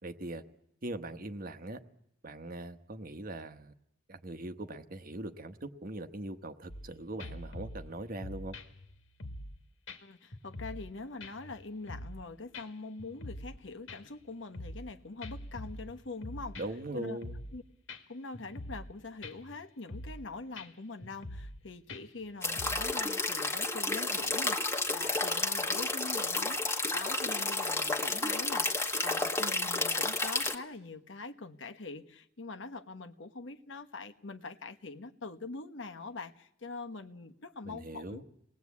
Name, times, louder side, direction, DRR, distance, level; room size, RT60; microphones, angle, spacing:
voice 1, 0.0-0.4 0.8-1.8 2.2-3.7 4.1-8.6 16.5-17.4 37.6-38.2, right 1 dB, 50° right, 9 dB, 1.2 m, -41 dB
sound 1, 6.7-6.9 7.2-9.6 9.9-10.0 10.3-10.9 11.2-12.2 12.5-12.7 13.0-13.6 13.9-14.9 15.2-16.9 17.2-17.6 17.9-18.0 18.3-18.9 19.2-19.6 19.9-20.3 20.6-20.7 21.0-21.6 21.9-22.9, left 1 dB, 90° left, 1.8 m, -44 dB
voice 2, 10.0-16.6 16.9-17.2 17.5-17.6 18.1-38.2, left 3 dB, 70° left, 7 dB, 1.2 m, -44 dB
sound 2, 22.4-30.5, left 2 dB, 15° left, 1.3 m, -31 dB
28.0 x 19.5 x 8.4 m, 0.81 s
head